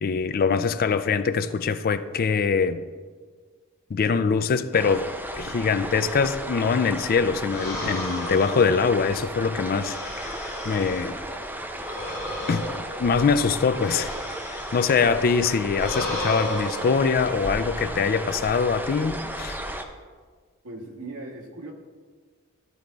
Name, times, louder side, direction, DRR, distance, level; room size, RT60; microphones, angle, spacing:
voice 1, 0.0-2.8 3.9-5.1 5.4-11.2 12.5-12.6 13.0-14.1 14.5-19.6, left 5 dB, 40° left, 0.4 m, -23 dB
sound 1, 4.7-19.8, right 1 dB, 10° right, 0.5 m, -34 dB
sound 2, 7.5-11.1 11.7-15.1 15.7-17.1, left 1 dB, 15° left, 2.4 m, -34 dB
voice 2, 20.6-21.7, right 2 dB, 85° right, 1.5 m, -38 dB
13.5 x 4.7 x 3.9 m
head